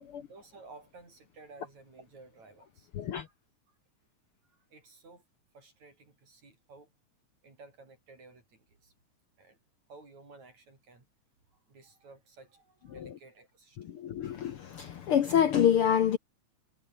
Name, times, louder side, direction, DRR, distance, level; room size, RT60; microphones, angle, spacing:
voice 1, 0.0-2.9 3.2-3.3 3.7-3.8 4.5-5.2 5.5-6.9 7.4-8.9 9.4-9.6 9.9-11.1 11.5-13.8, right 3 dB, 65° right, 8.9 m, -54 dB
voice 2, 2.9-3.3 12.9-13.2 13.8-16.2, left 9 dB, 60° left, 1.7 m, -27 dB
omnidirectional pair, 3.4 m